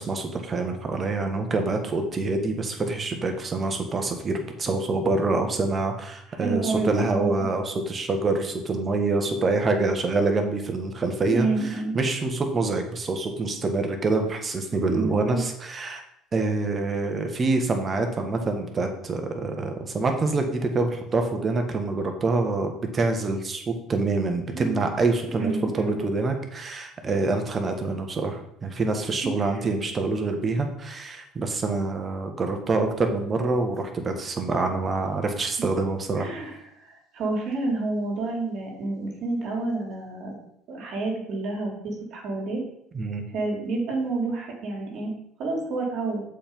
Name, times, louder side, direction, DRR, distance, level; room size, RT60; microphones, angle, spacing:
voice 1, 0.0-16.0 16.3-36.3 42.9-43.2, right 3 dB, 35° right, 4 dB, 1.5 m, -26 dB
voice 2, 6.3-7.5 11.2-12.0 14.9-15.4 24.5-24.8 25.4-26.0 36.2-36.5 36.8-40.4 40.7-42.6 43.3-45.1 45.4-46.2, right 3 dB, 60° right, -1 dB, 2.6 m, -29 dB
7.0 x 4.6 x 5.4 m, 0.73 s
supercardioid pair, 85°, 0 cm